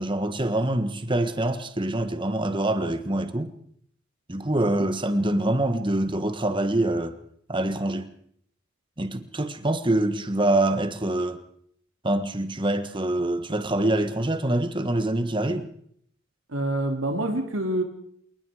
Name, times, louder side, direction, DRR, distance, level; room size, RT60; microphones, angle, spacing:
voice 1, 0.0-3.5 4.3-7.2 7.5-8.1 9.0-11.4 12.0-15.7, right 1 dB, 25° right, 1.4 m, -25 dB
voice 2, 16.5-17.8, right 1 dB, 70° right, 2.7 m, -26 dB
27.5 x 19.5 x 5.0 m
head